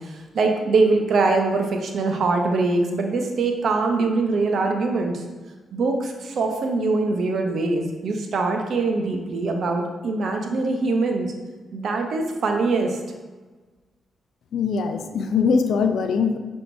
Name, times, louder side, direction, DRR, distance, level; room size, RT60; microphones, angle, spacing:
voice 1, 0.0-5.2 5.7-11.3 11.7-13.0, right 3 dB, 65° right, 3 dB, 0.7 m, -23 dB
voice 2, 14.5-16.4, left 5 dB, 75° left, 7 dB, 0.3 m, -22 dB
5.7 x 3.5 x 2.6 m, 1.3 s
supercardioid pair, 45°, 0 cm